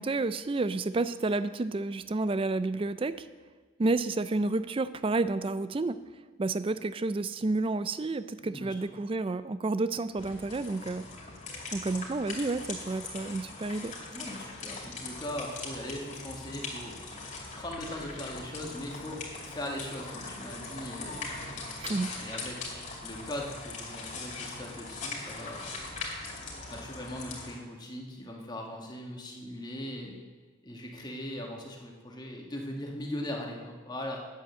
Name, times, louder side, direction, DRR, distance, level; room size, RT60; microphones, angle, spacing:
voice 1, 0.0-3.3 3.8-6.0 6.4-11.1 11.7-13.9 21.8-22.1, right 3 dB, 25° right, 14 dB, 0.3 m, -30 dB
voice 2, 8.4-8.7 14.1-21.2 22.2-22.6 23.0-26.0 26.7-30.2 30.6-34.2, left 1 dB, 20° left, 0 dB, 1.5 m, -40 dB
sound 1, 10.2-27.6, left 3 dB, 35° left, 2.4 m, -41 dB
9.4 x 7.6 x 7.5 m, 1.4 s
head